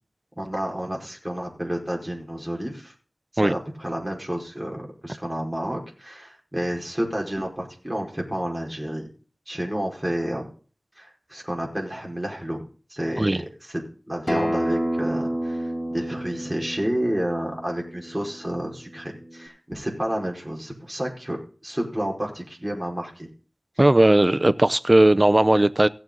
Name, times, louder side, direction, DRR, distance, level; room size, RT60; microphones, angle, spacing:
voice 1, 0.4-2.9 3.3-9.1 9.5-10.5 11.0-12.6 12.9-23.3, equal, 15° right, 5.0 m, -30 dB
Acoustic guitar, 14.3-19.5, equal, 15° left, 2.6 m, -30 dB
voice 2, 23.8-25.9, right 1 dB, 35° right, 0.6 m, -17 dB
17.0 x 7.4 x 4.0 m
wide cardioid pair, 45°, 0 cm